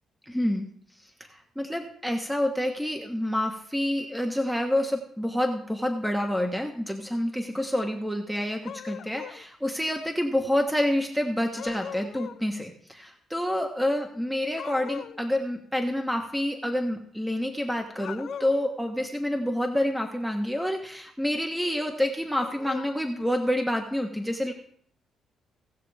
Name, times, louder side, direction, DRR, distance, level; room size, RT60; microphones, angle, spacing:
voice 1, 0.3-0.6 1.3-24.5, left 1 dB, ahead, 3 dB, 1.2 m, -28 dB
sound 1, 8.6-9.4 11.6-12.4 14.6-15.2 17.9-18.7 22.3-22.9, left 8 dB, 65° left, 0.5 m, -39 dB
17.5 x 6.7 x 3.4 m, 0.65 s
cardioid pair, 90°, 0 cm